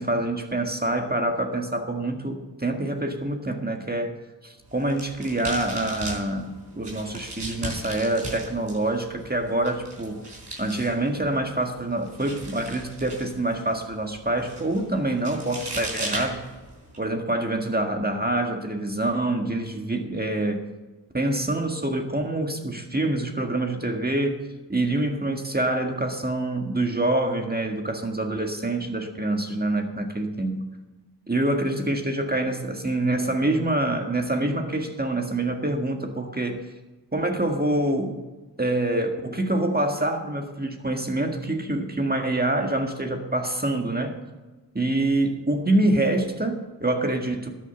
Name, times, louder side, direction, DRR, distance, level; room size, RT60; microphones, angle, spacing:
voice 1, 0.0-4.2 4.4-10.2 10.6-16.4 17.0-20.7 21.1-30.7 31.3-36.6 37.1-38.2 38.6-44.2 44.8-47.5, right 1 dB, 20° right, 3 dB, 1.8 m, -26 dB
sound 1, 4.6-17.0, right 1 dB, 70° right, 4.4 m, -38 dB
13.0 x 8.6 x 7.2 m, 1.2 s
cardioid pair, 55°, 42 cm